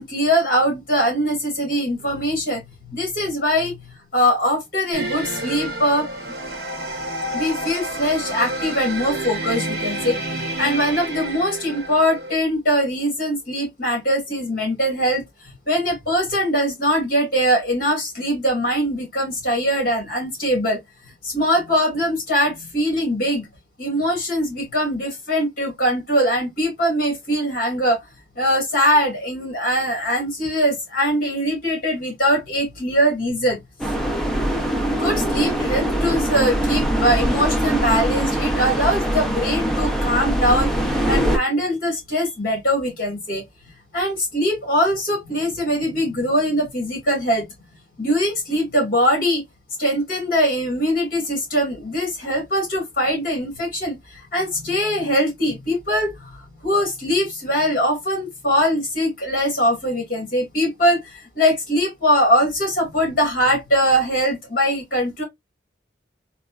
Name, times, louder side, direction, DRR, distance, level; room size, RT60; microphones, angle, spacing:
voice 1, 0.0-2.6 2.9-3.8 4.1-6.1 7.3-10.2 10.6-15.2 15.7-20.8 21.2-23.5 23.8-28.0 28.4-33.6 34.9-43.4 43.9-47.5 48.0-49.4 49.8-65.2, equal, 50° left, 1.9 m, -21 dB
sound 1, 4.9-12.4, right 1 dB, 55° right, 1.0 m, -29 dB
sound 2, 33.8-41.4, right 1 dB, ahead, 0.4 m, -22 dB
4.0 x 2.2 x 2.3 m
head